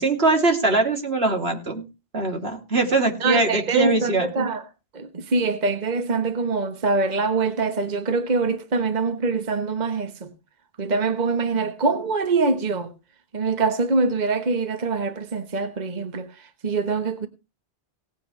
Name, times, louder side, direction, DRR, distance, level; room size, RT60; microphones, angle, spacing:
voice 1, 0.0-1.8 2.1-4.2, right 3 dB, 85° right, 3.2 m, -22 dB
voice 2, 3.2-4.6 4.9-10.3 10.8-12.9 13.3-16.3 16.6-17.3, right 4 dB, 45° right, 1.2 m, -24 dB
18.0 x 9.6 x 3.2 m
omnidirectional pair, 1.0 m